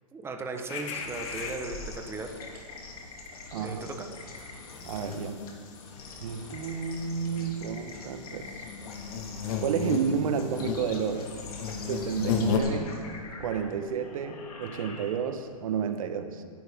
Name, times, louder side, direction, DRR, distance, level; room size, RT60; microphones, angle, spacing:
voice 1, 0.1-2.6 3.5-4.1, right 3 dB, 15° right, 4 dB, 1.3 m, -37 dB
sound 1, 0.7-2.3 2.6-2.8 3.1-12.6, left 7 dB, 55° left, 1.8 m, -35 dB
sound 2, 0.9-15.5, left 3 dB, 75° left, 3.0 m, -45 dB
voice 2, 3.5-3.8 4.8-5.4 6.2-8.6 9.6-11.3 11.9-13.0 13.4-16.4, right 7 dB, 65° right, 8 dB, 1.5 m, -31 dB
19.0 x 11.0 x 3.8 m, 2.1 s
hypercardioid pair, 130°, 19 cm